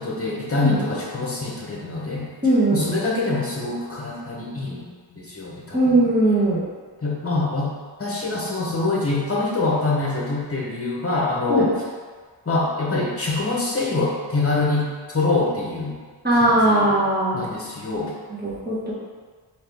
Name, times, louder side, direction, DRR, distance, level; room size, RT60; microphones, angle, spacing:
voice 1, 0.0-2.3 2.7-4.8 5.1-5.8 7.0-7.7 8.0-11.7 12.5-15.9 16.4-16.9 17.3-18.1, left 3 dB, 30° left, -4 dB, 0.9 m, -25 dB
voice 2, 2.4-2.8 5.7-6.6 11.5-11.7 16.2-17.4 18.4-18.9, right 1 dB, 20° right, -8 dB, 1.2 m, -19 dB
3.8 x 2.8 x 3.4 m, 1.5 s
wide cardioid pair, 45°, 44 cm